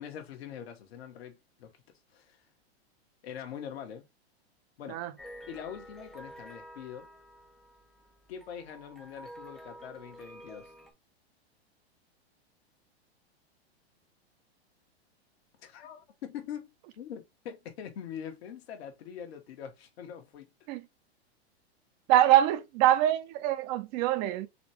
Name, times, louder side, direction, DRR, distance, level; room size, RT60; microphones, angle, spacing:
voice 1, 0.0-1.8 2.1-2.4 3.2-4.0 4.8-5.0 5.5-7.1 8.3-10.7 15.6-20.5, left 8 dB, 65° left, 1.3 m, -43 dB
sound 1, 5.2-10.9, equal, ahead, 0.4 m, -50 dB
voice 2, 22.1-24.5, right 13 dB, 40° right, 0.7 m, -24 dB
4.2 x 3.2 x 2.9 m
hypercardioid pair, 125°, 33 cm